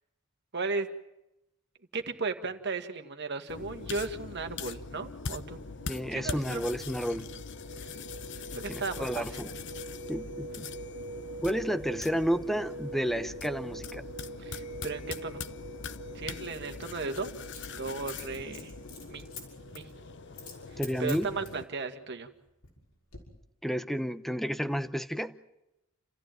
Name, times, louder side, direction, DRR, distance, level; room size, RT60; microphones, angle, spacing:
voice 1, 0.5-0.9 1.9-6.7 7.8-8.0 8.5-9.3 14.4-15.4 15.8-15.9 16.1-17.3 17.8-18.7 19.1-19.2 19.7-19.9 21.0-22.3, right 4 dB, 50° right, 6 dB, 2.0 m, -36 dB
sound 1, 3.5-21.6, left 4 dB, 55° left, 0.9 m, -42 dB
sound 2, 4.6-21.9, right 2 dB, 80° right, 2.1 m, -46 dB
voice 2, 5.9-7.3 8.7-9.5 10.1-10.7 11.4-14.1 20.8-21.3 23.6-25.3, equal, ahead, 10 dB, 0.9 m, -31 dB
Coin (dropping), 17.4-19.4 19.7-19.9 20.3-20.6 20.8-21.6 22.3-22.8 23.1-23.2, left 6 dB, 80° left, 6.2 m, -45 dB
29.5 x 14.5 x 9.2 m, 0.91 s
head